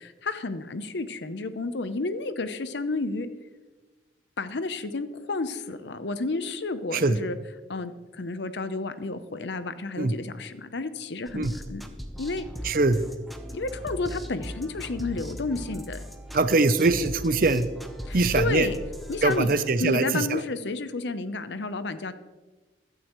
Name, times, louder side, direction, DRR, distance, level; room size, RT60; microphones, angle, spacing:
voice 1, 0.0-3.3 4.4-7.4 7.7-11.8 12.2-12.5 13.5-16.0 18.1-18.8 19.1-19.5 19.8-22.1, left 3 dB, 70° left, 11 dB, 0.7 m, -31 dB
sound 1, 11.3-19.7, equal, ahead, 0.7 m, -39 dB
voice 2, 12.7-13.0 16.3-17.7 18.1-18.7 19.2-20.0, right 3 dB, 50° right, 12 dB, 0.6 m, -22 dB
15.5 x 12.0 x 3.1 m, 1.2 s
head